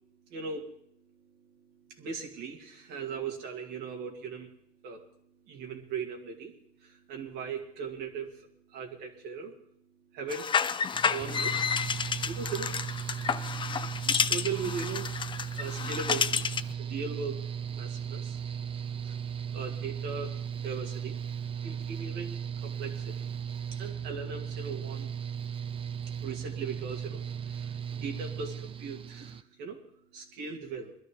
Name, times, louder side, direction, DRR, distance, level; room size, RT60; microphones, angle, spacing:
voice 1, 0.2-4.5 4.8-5.1 5.5-9.6 10.1-11.7 12.1-12.8 13.5-16.5 16.8-17.4 17.7-18.4 19.0-21.2 21.6-23.2 23.7-25.1 26.1-29.8 30.1-31.0, right 5 dB, 90° right, 1 dB, 2.5 m, -39 dB
sound 1, 10.3-16.7, left 6 dB, 30° left, 0.5 m, -30 dB
Mechanical fan, 10.9-29.4, right 8 dB, 30° right, 0.6 m, -37 dB
21.5 x 12.5 x 3.8 m, 0.69 s
cardioid pair, 110°, 17 cm